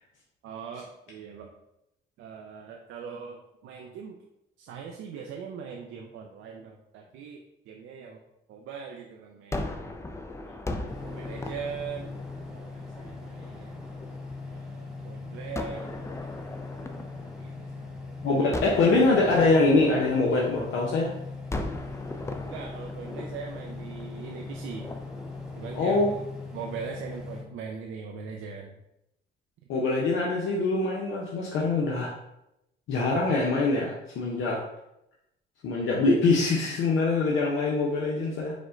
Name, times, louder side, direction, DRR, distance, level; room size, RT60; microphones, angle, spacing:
voice 1, 0.4-1.5 2.2-4.2 4.6-8.2 8.5-9.6 10.5-10.8 11.0-12.2 12.5-13.8 14.5-16.0 16.3-16.4 17.4-18.2 22.4-24.9 25.6-26.2 26.5-28.8, right 6 dB, 85° right, 1 dB, 0.5 m, -41 dB
Gunshot gunfire, 9.5-14.6 15.5-18.0 18.5-21.0 21.5-26.7, left 2 dB, 15° left, 0.4 m, -39 dB
sound 1, 10.9-27.4, left 3 dB, 5° right, 0.8 m, -40 dB
voice 2, 18.2-21.1 25.8-26.1 29.7-32.1 32.9-34.6 35.6-38.5, left 3 dB, 80° left, -3 dB, 0.7 m, -24 dB
5.0 x 2.1 x 3.7 m, 0.86 s
cardioid pair, 90°, 20 cm